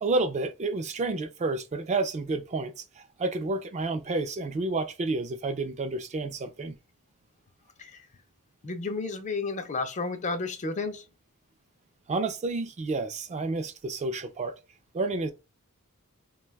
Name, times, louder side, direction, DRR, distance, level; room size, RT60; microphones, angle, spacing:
voice 1, 0.0-6.8 12.1-14.5 14.9-15.3, right 3 dB, 30° right, 0.4 m, -30 dB
voice 2, 8.6-11.0, left 3 dB, 35° left, 0.4 m, -32 dB
2.6 x 2.2 x 3.2 m
head